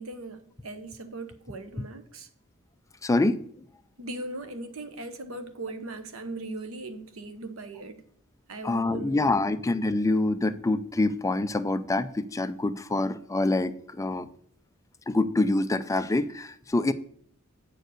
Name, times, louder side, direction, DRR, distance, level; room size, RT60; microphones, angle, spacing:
voice 1, 0.0-2.3 4.0-8.0 8.5-9.5, right 2 dB, 70° right, 1.1 m, -39 dB
voice 2, 3.0-3.5 8.6-14.3 15.1-16.9, left 2 dB, 15° left, 0.4 m, -26 dB
8.9 x 4.6 x 6.4 m
head